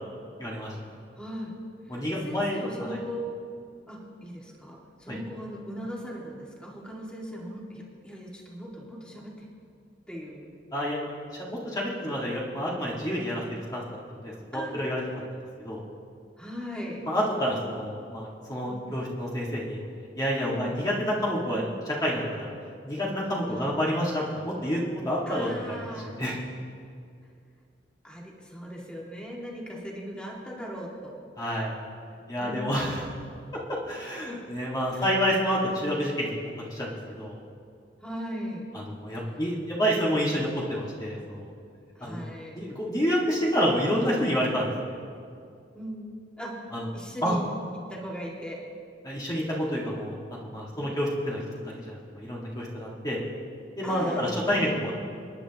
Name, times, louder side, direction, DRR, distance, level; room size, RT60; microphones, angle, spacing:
voice 1, 0.4-0.7 1.9-2.7 5.1-5.2 10.7-13.8 14.2-15.1 15.6-15.8 17.0-19.8 20.2-22.5 22.9-26.4 31.4-31.7 32.3-33.0 33.5-37.4 39.0-41.5 42.0-42.2 42.5-45.0 46.7-46.9 47.2-47.4 49.0-53.2 53.8-54.9, equal, 20° left, -5 dB, 1.9 m, -29 dB
voice 2, 1.2-1.5 1.9-3.2 3.9-9.5 10.1-10.5 14.5-14.8 16.4-17.1 18.7-18.9 20.5-20.8 23.5-23.7 25.3-26.1 28.0-31.2 32.4-32.9 34.3-34.4 34.9-35.1 38.0-38.7 42.0-42.7 45.7-46.6 46.9-47.5 47.9-48.6 50.7-51.0 53.8-54.7, equal, 5° left, -4 dB, 2.0 m, -39 dB
29.5 x 10.0 x 3.0 m, 2.4 s
head